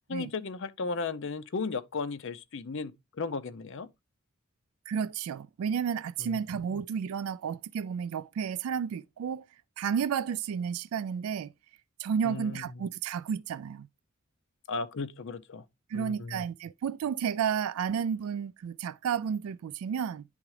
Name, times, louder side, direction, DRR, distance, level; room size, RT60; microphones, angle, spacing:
voice 1, 0.1-3.9 6.2-6.8 12.2-12.8 14.7-15.6 15.9-16.4, left 4 dB, 60° left, 0.6 m, -36 dB
voice 2, 4.9-9.4 9.8-11.5 12.0-13.9 15.9-20.2, right 7 dB, 80° right, 0.3 m, -32 dB
10.0 x 3.6 x 3.2 m
head